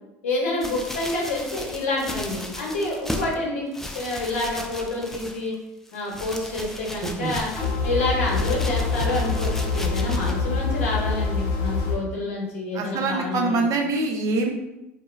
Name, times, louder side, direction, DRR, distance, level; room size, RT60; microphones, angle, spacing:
voice 1, 0.2-3.7 3.9-5.5 5.9-7.5 7.8-13.6, left 2 dB, 85° left, -2 dB, 0.7 m, -28 dB
sound 1, 0.6-3.4 3.7-5.5 5.9-7.9 8.3-10.4 11.1-11.2, left 1 dB, 5° left, 0.3 m, -35 dB
voice 2, 7.0-7.4 12.7-14.5, right 3 dB, 50° right, 3 dB, 0.5 m, -24 dB
sound 2, 7.6-11.9, left 4 dB, 50° left, 0.8 m, -25 dB
2.2 x 2.0 x 3.0 m, 0.92 s
hypercardioid pair, 80°, 7 cm